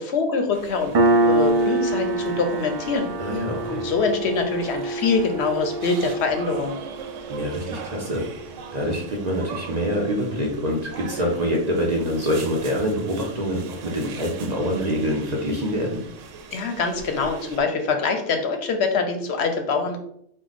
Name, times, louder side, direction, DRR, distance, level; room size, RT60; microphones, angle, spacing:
voice 1, 0.0-3.1 3.7-6.8 16.5-20.0, left 4 dB, 65° left, 5 dB, 0.8 m, -24 dB
sound 1, 0.5-17.6, right 6 dB, 85° right, 0.9 m, -40 dB
Piano, 0.9-8.1, right 2 dB, 60° right, 0.4 m, -25 dB
voice 2, 3.2-3.8 7.3-8.2 8.7-15.9, equal, 40° right, -1 dB, 0.8 m, -25 dB
4.6 x 2.2 x 3.9 m, 0.68 s
omnidirectional pair, 1.2 m